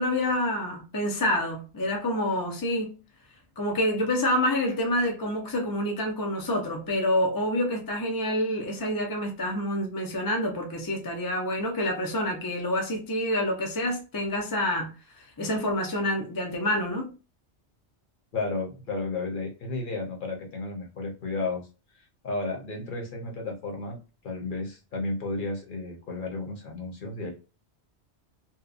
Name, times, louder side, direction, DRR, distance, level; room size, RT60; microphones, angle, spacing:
voice 1, 0.0-3.0 3.6-17.1, left 1 dB, 30° left, 0.4 m, -27 dB
voice 2, 18.3-21.7 21.9-24.0 24.2-27.4, left 3 dB, 50° left, 0.9 m, -33 dB
2.8 x 2.2 x 2.4 m
omnidirectional pair, 1.1 m